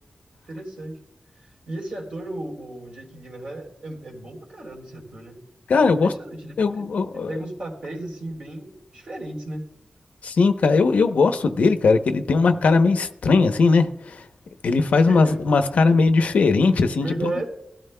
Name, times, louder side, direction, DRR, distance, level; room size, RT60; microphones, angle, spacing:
voice 1, 0.5-1.0 1.7-5.4 5.8-6.9 7.1-9.6 15.0-15.4 16.7-17.5, right 2 dB, 60° right, 3.5 m, -34 dB
voice 2, 5.7-6.1 6.6-7.3 10.2-14.2 14.6-17.3, left 4 dB, 90° left, 0.7 m, -19 dB
21.0 x 13.0 x 2.2 m
wide cardioid pair, 95°, 2 cm